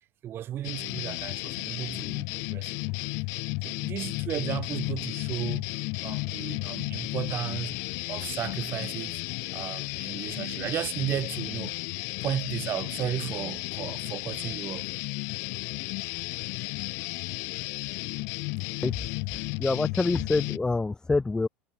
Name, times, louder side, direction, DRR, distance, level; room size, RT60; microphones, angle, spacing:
voice 1, 0.2-2.8 3.0-3.2 3.6-5.7 6.0-7.8 8.1-9.2 9.5-11.7 12.2-14.9, right 11 dB, 40° right, 4.8 m, -34 dB
sound 1, 0.6-20.6, left 30 dB, 55° left, 0.6 m, -33 dB
voice 2, 19.6-21.5, left 3 dB, 10° left, 1.4 m, -26 dB
hypercardioid pair, 80°, 6 cm